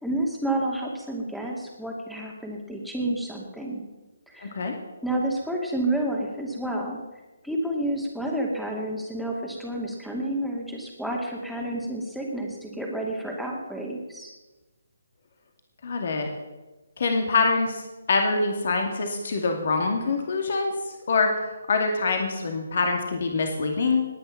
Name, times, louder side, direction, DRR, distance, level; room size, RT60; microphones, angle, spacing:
voice 1, 0.0-3.8 4.3-4.5 5.0-7.0 7.4-14.3, right 1 dB, ahead, -1 dB, 2.4 m, -30 dB
voice 2, 4.4-4.7 15.8-16.3 17.0-20.7 21.1-21.3 21.7-24.1, left 3 dB, 50° left, 4 dB, 2.4 m, -25 dB
19.5 x 9.6 x 5.9 m, 1.1 s
figure-of-eight pair, 140°, 0 cm